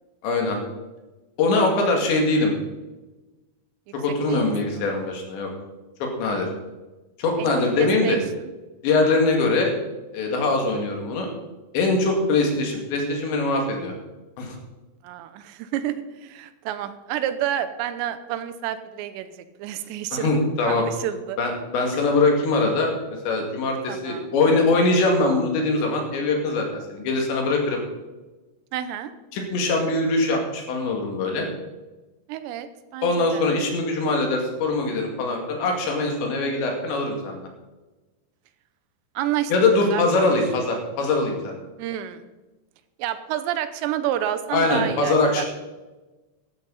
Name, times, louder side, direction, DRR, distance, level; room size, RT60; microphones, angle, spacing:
voice 1, 0.2-0.6 1.4-2.5 3.9-5.5 6.0-6.5 7.2-8.2 8.8-9.7 10.1-11.3 11.7-13.9 14.4-14.6 20.1-20.8 21.4-22.9 23.2-27.8 29.3-31.5 33.0-37.5 39.5-41.6 44.5-45.4, left 3 dB, 80° left, 1 dB, 4.5 m, -22 dB
voice 2, 7.8-8.2 15.0-21.4 23.9-24.4 28.7-29.1 32.3-33.4 39.1-39.5 39.9-40.1 41.8-42.3 43.0-45.4, right 11 dB, 85° right, 11 dB, 3.0 m, -29 dB
14.5 x 12.5 x 4.1 m, 1.1 s
omnidirectional pair, 5.1 m